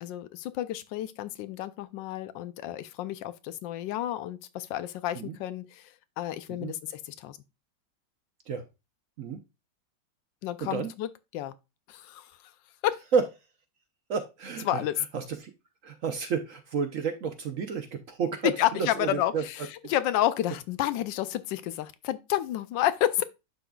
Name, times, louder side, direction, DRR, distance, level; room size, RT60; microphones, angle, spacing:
voice 1, 0.0-7.4 10.4-11.5 11.9-12.3 12.8-13.0 14.6-15.0 18.6-19.6 19.9-23.2, left 13 dB, 85° left, 1.3 m, -30 dB
voice 2, 10.6-10.9 13.1-13.2 14.1-14.8 15.1-15.5 15.8-19.4, right 5 dB, 60° right, 0.9 m, -30 dB
11.0 x 3.8 x 2.3 m
omnidirectional pair, 1.9 m